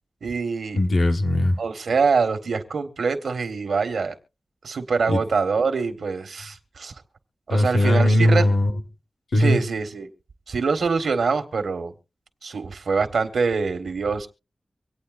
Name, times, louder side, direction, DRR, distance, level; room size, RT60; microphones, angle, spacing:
voice 1, 0.2-0.8 1.6-4.2 4.6-6.9 7.5-8.5 9.3-10.1 10.5-11.9 12.4-14.3, right 4 dB, 90° right, 1.4 m, -24 dB
voice 2, 0.7-1.6 5.1-5.2 7.5-8.8 9.3-9.6, left 1 dB, 75° left, 1.5 m, -19 dB
25.0 x 8.8 x 2.5 m
cardioid pair, 45°, 0 cm